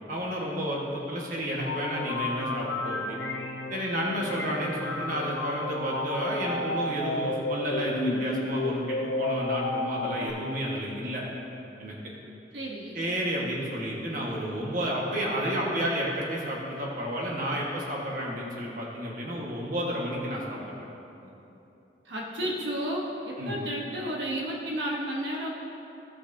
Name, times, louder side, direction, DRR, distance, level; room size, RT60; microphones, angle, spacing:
voice 1, 0.0-3.2 3.7-11.2 11.8-11.9 12.9-20.6 21.2-21.3 23.4-23.6, equal, 45° right, -3 dB, 1.4 m, -31 dB
sound 1, 1.6-10.3, left 2 dB, 75° left, 0.8 m, -32 dB
voice 2, 12.5-13.0 22.0-25.5, equal, 80° right, -3 dB, 1.1 m, -32 dB
16.0 x 5.9 x 2.7 m, 2.9 s
head